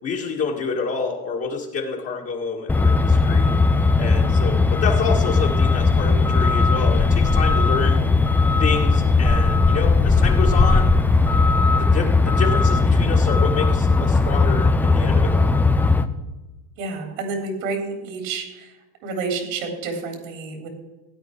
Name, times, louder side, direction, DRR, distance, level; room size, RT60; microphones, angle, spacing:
voice 1, 0.0-3.5 4.0-8.0 8.6-11.0 11.8-15.5, left 5 dB, 35° left, -2 dB, 2.0 m, -28 dB
Truck, 2.7-16.0, left 3 dB, 5° left, 0.3 m, -18 dB
voice 2, 16.8-18.7 19.0-20.7, right 4 dB, 80° right, 3 dB, 3.5 m, -29 dB
16.5 x 9.3 x 4.6 m, 1.1 s
supercardioid pair, 120°, 41 cm